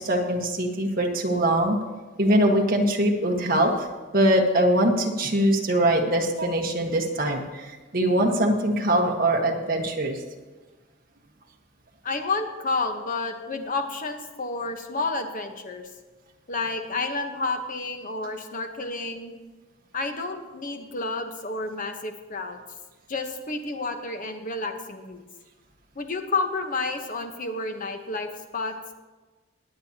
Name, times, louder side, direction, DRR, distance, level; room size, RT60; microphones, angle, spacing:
voice 1, 0.0-1.8 2.2-3.9 4.1-10.2, right 1 dB, 45° right, 2 dB, 1.4 m, -22 dB
voice 2, 12.0-15.9 16.5-19.3 19.9-22.6 23.1-25.2 26.0-28.7, left 3 dB, 45° left, 5 dB, 1.1 m, -30 dB
21.5 x 8.5 x 2.9 m, 1.3 s
head